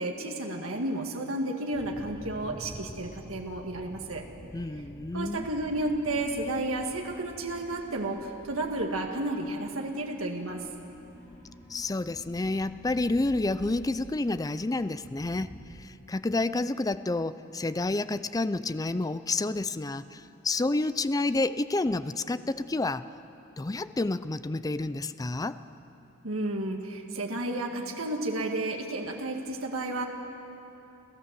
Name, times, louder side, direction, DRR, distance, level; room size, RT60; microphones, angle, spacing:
voice 1, 0.0-4.2 5.1-10.6 26.2-30.1, right 1 dB, 75° right, 2 dB, 1.8 m, -32 dB
sound 1, 1.7-15.6, equal, 55° left, 5.3 m, -49 dB
voice 2, 4.5-5.5 11.7-23.1 23.6-25.6, left 2 dB, 15° left, 14 dB, 0.4 m, -29 dB
29.5 x 14.0 x 7.5 m, 3.0 s
head